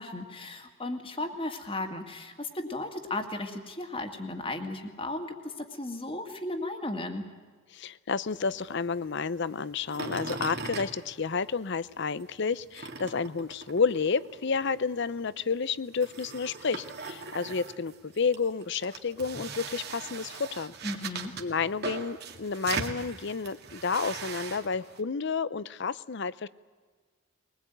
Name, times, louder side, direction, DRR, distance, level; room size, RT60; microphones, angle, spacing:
voice 1, 0.0-7.2 20.8-21.3, left 2 dB, 25° left, 6 dB, 2.1 m, -35 dB
voice 2, 7.7-20.7 21.4-26.5, left 5 dB, 55° left, 18 dB, 0.6 m, -30 dB
sound 1, 8.3-11.8 12.1-25.0, right 4 dB, 50° right, 2.1 m, -40 dB
22.0 x 20.5 x 9.1 m, 1.5 s
head